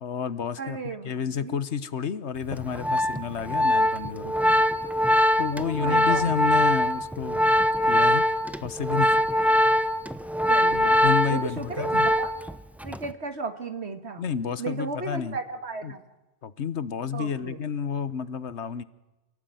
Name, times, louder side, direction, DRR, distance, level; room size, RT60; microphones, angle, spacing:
voice 1, 0.0-4.4 5.4-7.4 7.9-8.2 8.6-9.1 10.7-12.1 14.2-15.4 15.8-15.9 16.4-18.8, left 7 dB, 70° left, 15 dB, 1.4 m, -30 dB
voice 2, 0.6-1.6 5.5-6.4 10.5-11.0 11.3-12.3 12.8-14.2 14.6-16.0 17.1-17.6, right 4 dB, 65° right, 8 dB, 2.0 m, -34 dB
Organ, 2.5-12.5 12.8-13.1, equal, ahead, 0.8 m, -22 dB
28.0 x 18.0 x 9.2 m, 1.1 s
omnidirectional pair, 1.2 m